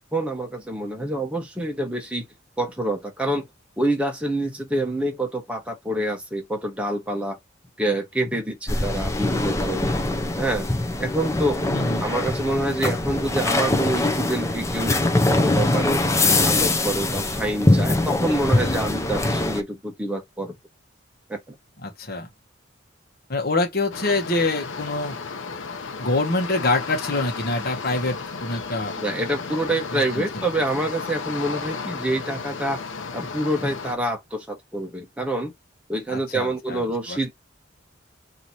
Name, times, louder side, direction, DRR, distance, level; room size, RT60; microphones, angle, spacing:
voice 1, 0.0-2.3 2.6-3.5 3.8-7.4 7.8-10.0 10.4-10.7 11.0-11.6 12.0-16.0 16.4-20.6 21.3-21.5 29.0-32.8 33.1-35.5 35.9-37.3, right 1 dB, 5° right, 1.1 m, -27 dB
sound 1, 8.7-19.6, left 2 dB, 15° left, 0.6 m, -22 dB
voice 2, 11.7-12.1 21.8-22.3 23.3-25.2 26.0-29.0 29.9-30.5 36.1-37.2, left 2 dB, 55° left, 1.2 m, -25 dB
sound 2, 23.9-33.9, left 4 dB, 85° left, 0.8 m, -34 dB
3.1 x 2.9 x 4.0 m
head